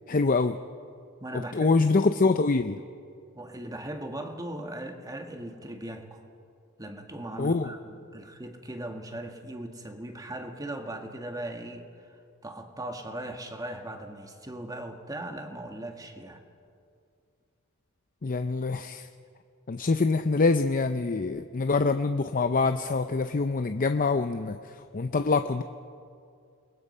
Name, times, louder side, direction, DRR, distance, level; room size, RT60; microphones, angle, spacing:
voice 1, 0.1-0.6 1.3-2.8 7.4-7.7 18.2-19.1 19.7-24.6 24.9-25.6, left 3 dB, 40° left, 9 dB, 0.6 m, -25 dB
voice 2, 1.2-1.7 3.3-6.2 6.8-11.9 12.4-16.4, right 1 dB, 15° right, 4 dB, 1.8 m, -38 dB
28.5 x 21.0 x 5.6 m, 2.4 s
head